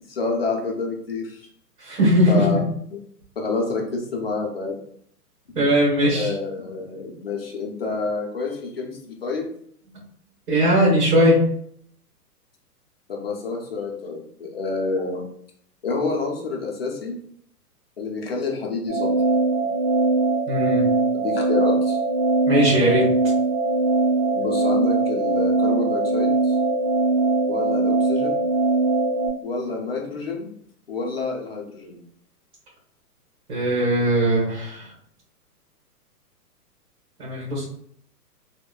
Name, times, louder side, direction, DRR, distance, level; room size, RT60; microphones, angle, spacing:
voice 1, 0.1-1.5 2.3-2.6 2.9-3.0 3.4-4.8 5.6-5.7 6.0-9.5 13.1-15.2 15.8-17.2 18.0-19.3 21.1-22.0 24.3-26.6 27.5-28.4 29.4-30.5 30.9-32.0, left 3 dB, 40° left, -1 dB, 0.4 m, -28 dB
voice 2, 1.8-2.4 5.5-6.3 10.5-11.4 20.5-20.9 22.5-23.0 33.5-34.9 37.2-37.6, equal, 65° right, -5 dB, 1.4 m, -19 dB
sound 1, 18.9-29.3, right 3 dB, 45° right, 1.3 m, -21 dB
3.0 x 2.1 x 2.2 m, 0.66 s
hypercardioid pair, 170°, 48 cm